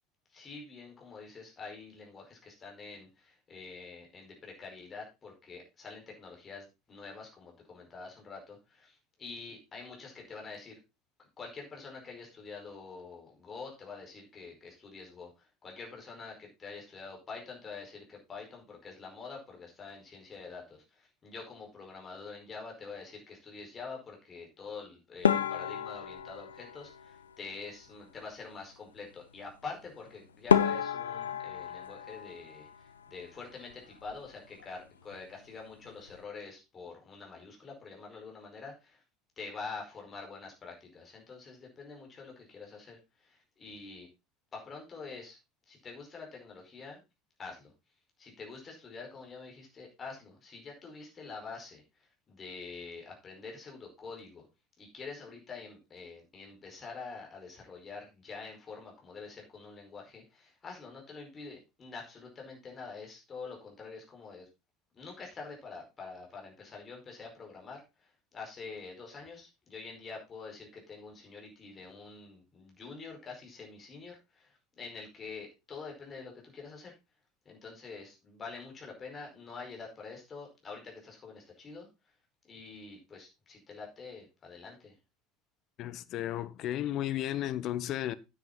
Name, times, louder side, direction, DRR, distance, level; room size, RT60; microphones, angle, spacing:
voice 1, 0.3-10.8 11.4-39.0 39.4-44.1 44.5-45.4 45.7-47.0 47.4-47.7 48.2-54.4 54.8-64.5 64.9-76.9 77.4-81.9 82.5-84.9, left 4 dB, 30° left, 5.0 m, -46 dB
sound 1, 25.2-27.7 30.0-30.1 30.5-33.3 33.5-34.3 34.6-34.8 35.1-35.2 35.8-36.2, left 8 dB, 80° left, 0.7 m, -31 dB
voice 2, 85.8-88.1, left 13 dB, 50° left, 0.9 m, -33 dB
10.0 x 9.5 x 4.1 m
figure-of-eight pair, 70°, 0 cm